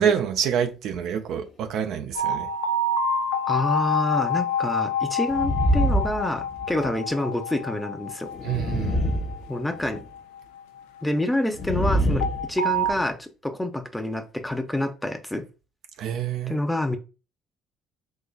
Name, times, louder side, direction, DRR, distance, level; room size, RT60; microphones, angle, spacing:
voice 1, 0.0-2.5 8.4-9.0 16.0-16.6, right 8 dB, 70° right, 0.4 m, -26 dB
sound 1, 2.2-11.2 12.2-12.9, left 2 dB, 90° left, 0.3 m, -28 dB
voice 2, 3.4-8.3 9.5-10.0 11.0-15.4 16.5-17.0, left 1 dB, 10° left, 0.7 m, -27 dB
sound 2, 5.3-6.9 8.3-10.0 11.5-13.1, equal, 50° left, 0.8 m, -25 dB
3.9 x 2.8 x 2.3 m
hypercardioid pair, 60°, 0 cm